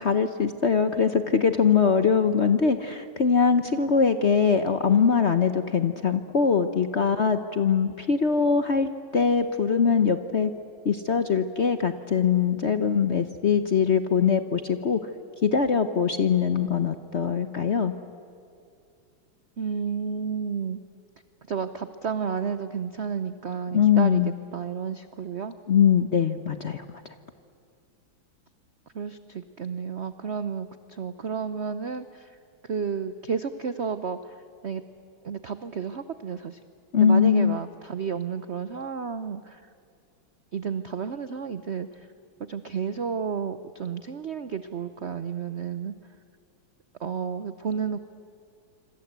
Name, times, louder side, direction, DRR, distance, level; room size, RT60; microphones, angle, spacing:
voice 1, 0.0-10.5 10.8-15.1 15.4-17.9 23.7-24.3 25.7-26.8 36.9-37.6, left 6 dB, 50° left, 9 dB, 0.8 m, -22 dB
voice 2, 19.6-20.8 21.5-24.2 24.5-25.6 28.9-32.3 32.6-34.3 34.6-34.8 35.2-36.6 37.0-39.6 40.5-42.1 42.5-45.9 47.0-48.0, right 6 dB, 75° right, 11 dB, 0.6 m, -31 dB
26.0 x 26.0 x 8.1 m, 2.5 s
omnidirectional pair, 2.3 m